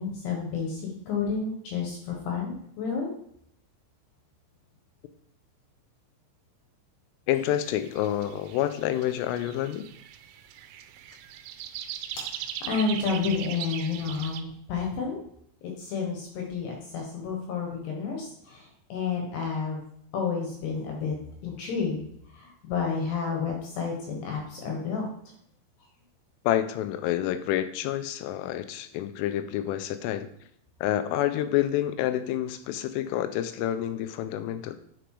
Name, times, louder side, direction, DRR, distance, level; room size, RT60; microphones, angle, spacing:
voice 1, 0.0-3.1 12.7-15.2 15.8-19.8 20.1-21.2 21.4-22.0 22.3-25.1, left 5 dB, 70° left, 0 dB, 2.9 m, -30 dB
voice 2, 7.3-9.9 26.4-30.3 30.8-34.8, left 12 dB, 85° left, 10 dB, 3.2 m, -28 dB
sound 1, 7.4-14.4, right 10 dB, 85° right, 3.2 m, -40 dB
9.3 x 5.0 x 4.7 m, 0.69 s
omnidirectional pair, 5.7 m